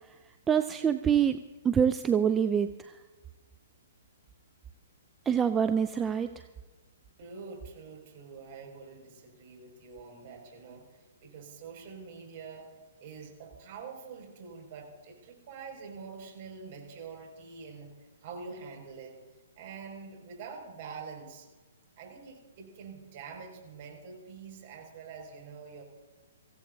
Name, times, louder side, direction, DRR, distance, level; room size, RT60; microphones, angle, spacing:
voice 1, 0.5-1.4 1.6-2.9 5.3-6.3, right 8 dB, 15° right, 10 dB, 0.6 m, -25 dB
voice 2, 7.2-10.8 11.2-12.7 13.0-17.9 18.2-19.2 19.5-21.5 22.0-25.8, right 5 dB, 45° right, 1 dB, 6.4 m, -45 dB
24.5 x 16.0 x 2.8 m, 1.2 s
hypercardioid pair, 125°, 0 cm